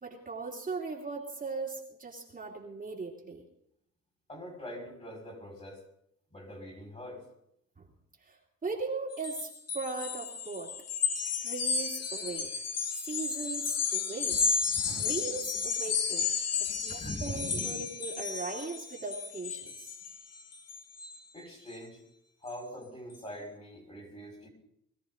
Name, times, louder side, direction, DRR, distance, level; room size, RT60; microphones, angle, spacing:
voice 1, 0.0-3.4 8.2-8.4 8.6-10.7 11.4-12.5 13.0-14.4 14.9-16.3 16.6-19.9, right 3 dB, 25° right, -2 dB, 2.6 m, -38 dB
voice 2, 4.3-5.8 6.3-7.2 14.7-15.1 16.7-17.7 21.3-22.0 22.4-24.5, equal, 20° left, 2 dB, 5.3 m, -43 dB
sound 1, 9.1-21.2, left 6 dB, 55° left, 1.6 m, -33 dB
21.0 x 13.5 x 3.9 m, 0.74 s
cardioid pair, 90°, 30 cm